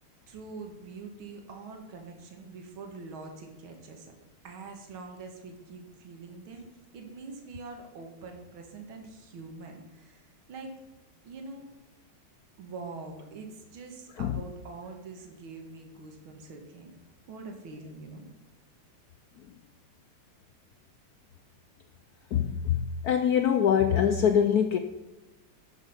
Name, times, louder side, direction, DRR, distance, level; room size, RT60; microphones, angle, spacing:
voice 1, 0.3-4.1 4.4-6.7 6.9-10.7 11.2-11.7 12.6-16.9 17.3-18.2, right 3 dB, 75° right, 3 dB, 2.3 m, -44 dB
voice 2, 22.3-24.8, left 8 dB, 85° left, 8 dB, 0.8 m, -24 dB
11.5 x 6.6 x 5.7 m, 1.1 s
omnidirectional pair, 2.3 m